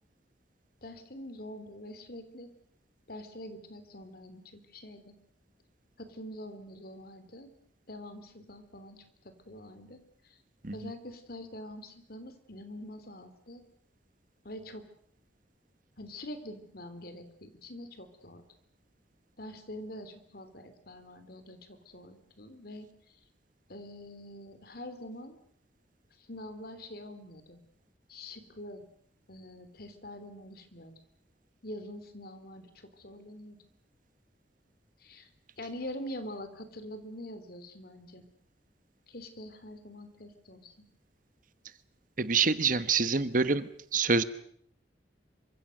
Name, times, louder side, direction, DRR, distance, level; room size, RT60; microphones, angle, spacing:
voice 1, 0.8-2.5 3.1-5.1 6.0-7.5 7.9-10.4 10.7-13.6 14.4-14.9 16.0-18.4 19.4-23.2 23.7-25.4 26.2-27.6 28.1-28.8 29.3-30.9 31.6-33.6 35.0-35.3 35.6-38.2 39.1-40.9, left 1 dB, 55° left, 10 dB, 3.4 m, -45 dB
voice 2, 42.2-44.2, right 4 dB, 45° right, 13 dB, 1.3 m, -26 dB
27.5 x 25.0 x 6.7 m, 0.66 s
head